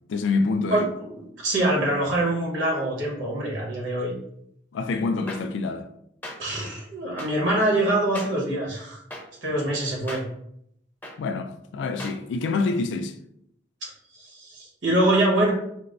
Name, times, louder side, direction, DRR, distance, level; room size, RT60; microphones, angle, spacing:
voice 1, 0.1-0.9 4.7-5.9 11.2-13.2, left 3 dB, 70° left, 0.3 m, -26 dB
voice 2, 0.7-4.1 6.4-9.0 9.4-10.2 13.8-15.5, right 1 dB, 80° right, 1.2 m, -24 dB
sound 1, 5.3-5.4 6.2-6.3 7.2-7.3 8.1-8.3 9.1-9.2 10.1-10.2 11.0-11.1 12.0-12.1, left 1 dB, 10° left, 0.5 m, -36 dB
4.3 x 2.0 x 2.5 m
head